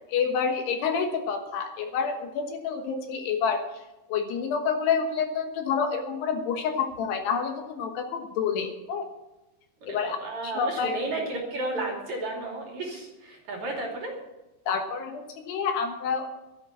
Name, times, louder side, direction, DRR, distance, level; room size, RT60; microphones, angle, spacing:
voice 1, 0.1-3.8 4.1-9.1 9.9-10.2 10.4-11.0 14.7-16.3, left 6 dB, 70° left, 5 dB, 3.1 m, -28 dB
voice 2, 9.8-14.1, right 2 dB, 45° right, 0 dB, 3.5 m, -33 dB
12.5 x 10.5 x 7.3 m, 1.0 s
omnidirectional pair, 5.4 m